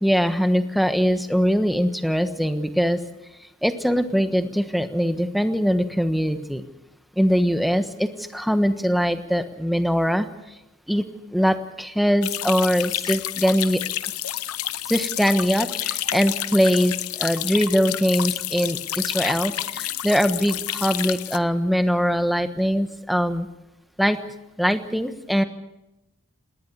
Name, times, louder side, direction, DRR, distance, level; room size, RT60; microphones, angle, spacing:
voice 1, 0.0-3.0 3.6-6.6 7.2-10.3 10.9-11.0 11.3-13.8 14.9-23.5 24.0-24.2 24.6-25.4, equal, ahead, 8 dB, 1.2 m, -22 dB
sound 1, 12.2-21.4, left 13 dB, 85° left, 0.9 m, -29 dB
20.0 x 19.0 x 8.2 m, 0.92 s
head